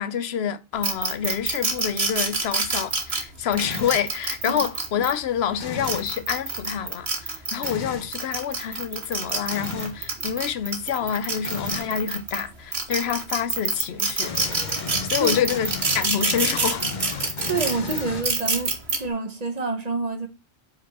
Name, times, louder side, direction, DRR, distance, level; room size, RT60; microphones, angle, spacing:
voice 1, 0.0-14.3 15.0-16.9, left 8 dB, 80° left, 0.9 m, -27 dB
sound 1, 0.8-5.1 5.7-7.7 8.1-12.4 12.7-19.0, right 4 dB, 80° right, 1.7 m, -26 dB
sound 2, 3.6-4.1 5.6-6.1 7.6-8.1 9.5-10.0 11.4-11.9 14.2-18.6, left 5 dB, 50° left, 0.9 m, -34 dB
voice 2, 17.4-20.3, right 4 dB, 40° right, 1.1 m, -28 dB
5.3 x 4.3 x 6.0 m
omnidirectional pair, 1.1 m